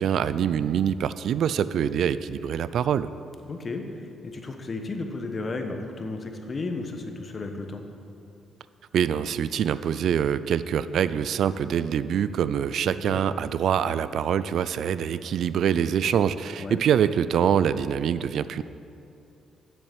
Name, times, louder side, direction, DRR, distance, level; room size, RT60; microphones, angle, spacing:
voice 1, 0.0-3.1 8.9-18.6, right 8 dB, 70° right, 15 dB, 0.3 m, -25 dB
voice 2, 3.4-7.8 12.8-13.2 16.6-16.8, left 3 dB, 35° left, 4 dB, 1.2 m, -34 dB
7.8 x 7.2 x 8.0 m, 2.6 s
cardioid pair, 90°, 0 cm